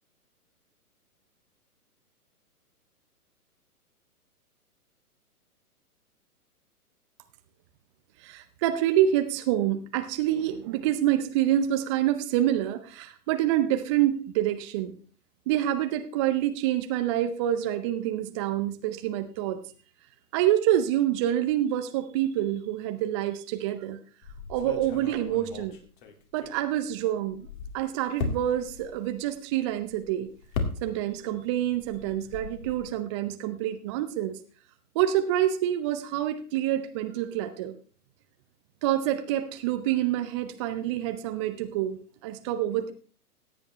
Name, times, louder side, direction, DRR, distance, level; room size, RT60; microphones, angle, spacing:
voice 1, 8.2-14.9 15.5-19.6 20.3-24.0 24.5-25.8 26.3-27.5 27.7-30.3 30.8-34.4 34.9-37.8 38.8-42.9, right 12 dB, 20° right, 8 dB, 0.7 m, -27 dB
sound 1, 24.2-26.9 27.3-31.3 31.6-32.9, left 4 dB, 35° left, 2.1 m, -37 dB
17.0 x 8.7 x 3.1 m, 0.39 s
figure-of-eight pair, 125°, 46 cm